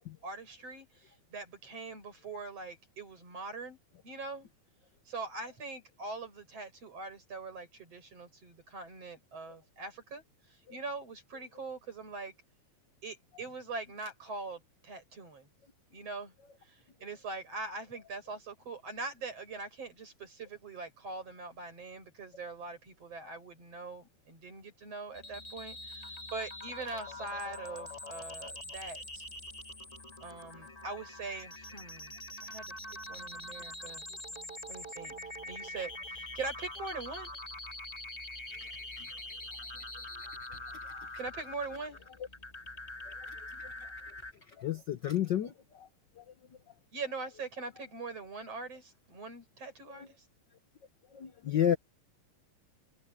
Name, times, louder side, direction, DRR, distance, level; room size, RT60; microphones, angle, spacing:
voice 1, 0.2-3.8 4.0-4.5 5.1-12.3 13.0-15.5 15.9-16.3 16.6-29.2 30.2-32.7 33.1-34.0 34.7-35.2 35.5-37.3 41.2-42.0 46.9-50.1, right 3 dB, 55° right, 8.1 m, -42 dB
sound 1, 25.1-44.3, left 1 dB, 15° left, 1.9 m, -44 dB
voice 2, 44.6-45.9 46.2-46.3 49.9-50.1 51.1-51.8, left 10 dB, 85° left, 0.9 m, -31 dB
omnidirectional pair, 3.4 m